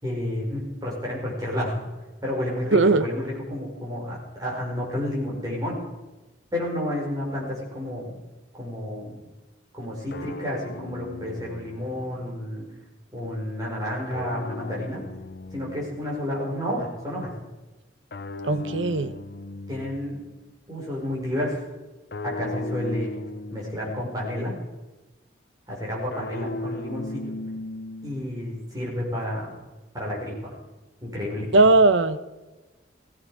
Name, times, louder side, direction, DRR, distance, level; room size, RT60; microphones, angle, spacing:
voice 1, 0.0-1.8 2.2-5.8 6.5-8.2 8.6-9.2 9.7-12.7 13.1-15.0 15.5-17.3 18.5-18.6 19.7-20.2 20.7-21.6 22.2-23.2 23.5-24.5 25.7-27.3 28.0-29.5 29.9-30.6 31.0-31.6, left 1 dB, 20° right, -3 dB, 5.3 m, -30 dB
voice 2, 2.7-3.0 18.4-19.2 31.5-32.2, right 3 dB, 85° right, 12 dB, 0.9 m, -18 dB
sound 1, 10.1-12.4 14.1-16.3 18.1-20.4 22.1-24.4 26.1-28.4, left 2 dB, 55° left, 0.7 m, -37 dB
16.5 x 15.5 x 4.9 m, 1.1 s
head